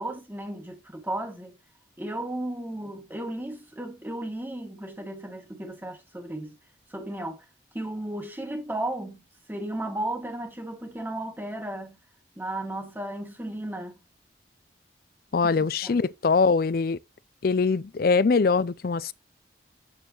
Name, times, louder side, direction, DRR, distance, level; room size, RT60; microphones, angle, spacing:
voice 1, 0.0-1.5 2.0-6.5 6.9-7.4 7.7-9.2 9.5-12.0 12.4-14.0 15.5-16.0, right 1 dB, 10° right, 2.1 m, -34 dB
voice 2, 15.3-17.0 17.4-19.1, left 4 dB, 50° left, 0.4 m, -23 dB
8.9 x 6.8 x 3.0 m
head